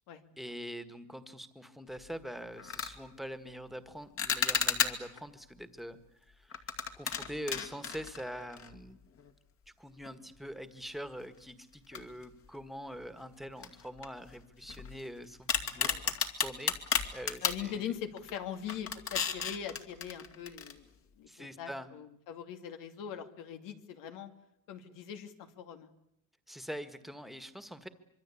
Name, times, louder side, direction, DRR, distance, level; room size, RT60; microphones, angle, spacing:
voice 1, 0.4-9.0 9.8-16.7 17.1-17.9 21.3-21.9 26.5-27.9, equal, ahead, 10 dB, 1.7 m, -44 dB
sound 1, 2.0-2.2 2.6-3.0 4.2-5.2 6.5-8.9 9.2-9.3 10.0-10.1 11.9-12.6 12.9-13.1 13.6-15.1 15.5-17.6 18.2-18.4 18.7-20.7, left 7 dB, 45° left, 2.4 m, -33 dB
voice 2, 17.4-20.9 21.2-24.3 24.7-25.9, left 8 dB, 85° left, 7 dB, 2.7 m, -42 dB
25.5 x 23.5 x 8.5 m, 0.77 s
cardioid pair, 140°, 31 cm